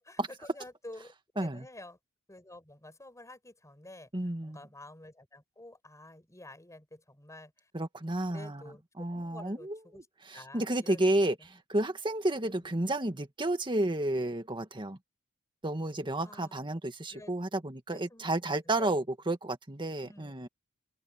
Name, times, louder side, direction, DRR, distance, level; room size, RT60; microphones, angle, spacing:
voice 1, 0.0-2.0 2.3-4.1 4.4-7.7 8.3-10.1 10.3-11.0 11.4-11.6 12.4-12.7 16.2-16.7 17.1-17.3 17.9-18.3 18.6-19.0 20.0-20.3, left 1 dB, 15° left, 6.7 m, -50 dB
voice 2, 4.1-4.6 7.7-8.6 9.0-15.0 15.6-20.5, right 1 dB, 20° right, 1.9 m, -31 dB
head